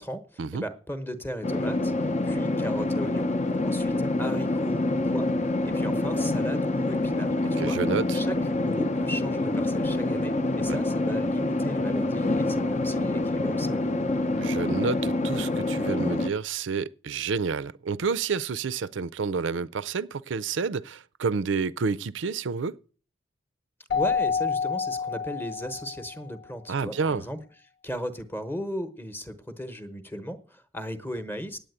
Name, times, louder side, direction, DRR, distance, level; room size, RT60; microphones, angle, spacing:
voice 1, 0.0-3.3 3.6-7.8 8.1-13.9 23.9-27.4 27.8-31.6, equal, 10° left, 0.9 m, -36 dB
sound 1, 1.4-16.3, left 2 dB, 35° left, 0.6 m, -26 dB
voice 2, 7.6-8.2 10.7-10.8 14.4-22.8 26.7-27.2, right 5 dB, 70° right, 0.5 m, -29 dB
Keyboard (musical), 23.9-26.2, left 5 dB, 60° left, 1.0 m, -28 dB
9.0 x 8.8 x 7.9 m
head